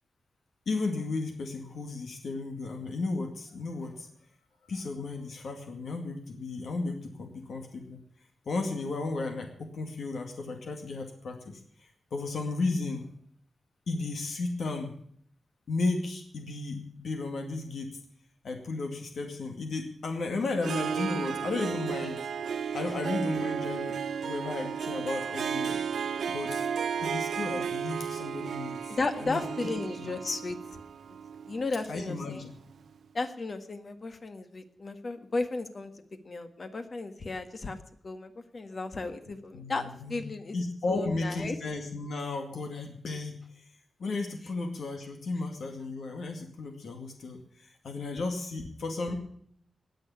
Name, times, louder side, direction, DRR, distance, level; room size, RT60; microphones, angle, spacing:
voice 1, 0.7-4.1 4.6-8.0 8.5-13.1 13.9-14.9 15.7-18.0 18.4-22.2 22.7-25.8 26.3-26.7 27.0-29.4 30.0-30.1 31.9-32.5 39.5-40.2 40.5-43.6 44.0-49.1, left 3 dB, 70° left, 3 dB, 2.2 m, -34 dB
Harp, 20.6-32.4, right 7 dB, 80° right, 0.8 m, -34 dB
voice 2, 28.9-30.6 31.5-32.4 33.1-35.9 36.2-37.8 38.0-40.6 40.9-41.5, left 3 dB, 40° left, 8 dB, 1.6 m, -34 dB
19.0 x 7.0 x 8.4 m, 0.64 s
wide cardioid pair, 135°, 0 cm